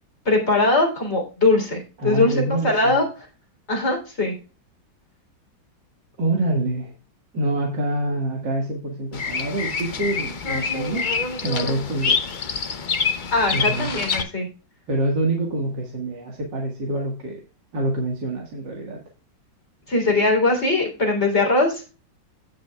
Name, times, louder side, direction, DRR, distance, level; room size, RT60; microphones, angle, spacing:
voice 1, 0.3-3.1 3.7-4.3 13.3-14.5 19.9-21.8, left 2 dB, 35° left, 1 dB, 3.8 m, -21 dB
voice 2, 2.0-3.0 6.2-6.9 7.3-11.1 11.4-12.3 13.5-13.9 14.9-17.4 17.7-19.0, right 2 dB, 65° right, 0 dB, 2.4 m, -26 dB
Bird vocalization bird call bird song, 9.1-14.2, left 5 dB, 50° left, 0.6 m, -26 dB
17.0 x 6.5 x 2.3 m, 0.34 s
omnidirectional pair, 2.1 m